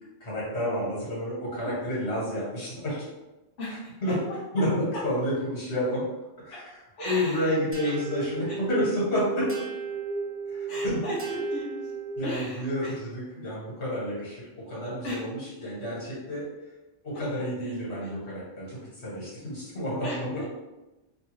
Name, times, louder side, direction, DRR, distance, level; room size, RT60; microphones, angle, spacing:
voice 1, 0.2-3.1 4.0-4.2 4.5-6.0 6.4-6.8 7.0-9.5 10.5-11.0 12.2-16.5 17.0-20.4, equal, 70° left, -7 dB, 1.7 m, -30 dB
voice 2, 3.6-4.1 6.5-6.6 7.0-7.6 7.8-8.6 10.7-11.9 12.2-13.0 15.0-15.2 17.1-17.2 18.0-18.1 20.0-20.4, left 1 dB, 85° left, -9 dB, 1.1 m, -36 dB
sound 1, 7.7-12.5, right 4 dB, 15° right, 0.5 m, -34 dB
3.1 x 2.4 x 3.0 m, 1.0 s
omnidirectional pair, 1.2 m